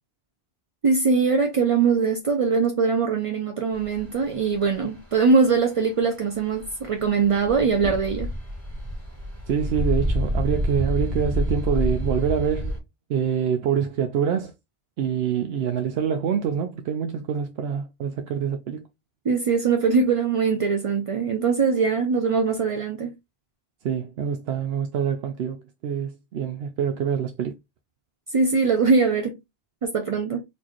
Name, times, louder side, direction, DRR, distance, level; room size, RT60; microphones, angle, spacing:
voice 1, 0.8-8.3 19.2-23.1 28.3-29.4 29.8-30.4, right 5 dB, 45° right, 0.4 m, -22 dB
sound 1, 3.7-12.8, equal, 30° right, 1.7 m, -28 dB
voice 2, 9.5-12.8 13.1-14.5 15.0-18.9 23.8-27.5, right 8 dB, 75° right, 0.8 m, -26 dB
4.3 x 2.5 x 3.0 m
omnidirectional pair, 1.1 m